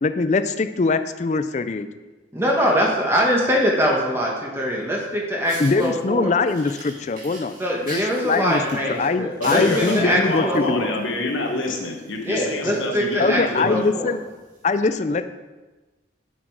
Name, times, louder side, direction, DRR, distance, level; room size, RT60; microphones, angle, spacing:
voice 1, 0.0-1.9 5.6-8.6 9.0-10.9 13.2-14.2 14.6-15.3, left 3 dB, 40° left, 11 dB, 0.4 m, -22 dB
voice 2, 2.3-6.3 7.6-10.9 12.2-14.1, equal, 15° right, -2 dB, 1.2 m, -23 dB
Fire, 5.0-5.1 5.5-5.9 6.5-9.1 9.4-10.6 11.4-11.7 12.0-12.1 12.5-12.6 12.8-13.0 13.6-13.7 14.6-14.7, right 1 dB, 45° right, 1.9 m, -37 dB
voice 3, 9.4-13.7, left 2 dB, 90° left, 1 dB, 1.3 m, -27 dB
8.3 x 7.4 x 4.7 m, 1.2 s
head